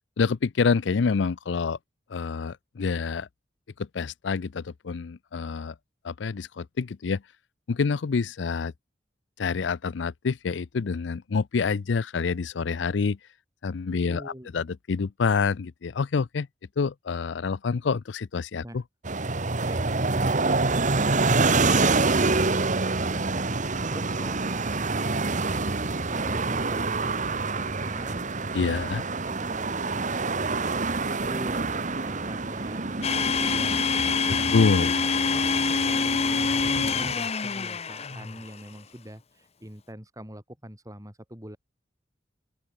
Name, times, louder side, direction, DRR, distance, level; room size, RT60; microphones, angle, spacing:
voice 1, 0.2-1.8 2.1-3.3 3.8-5.7 6.0-7.2 7.7-8.7 9.4-13.2 13.6-16.5 16.8-18.8 28.5-29.0 34.5-34.9, left 5 dB, 75° left, 0.5 m, -27 dB
voice 2, 13.9-14.6 18.6-18.8 19.6-25.8 26.1-28.3 28.6-31.6 32.0-33.9 34.2-34.9 35.3-41.6, equal, 20° right, 6.9 m, -43 dB
sound 1, 19.0-37.1, right 3 dB, 45° right, 1.6 m, -27 dB
Domestic sounds home sounds, 33.0-38.5, left 5 dB, 35° left, 0.8 m, -26 dB
open air
head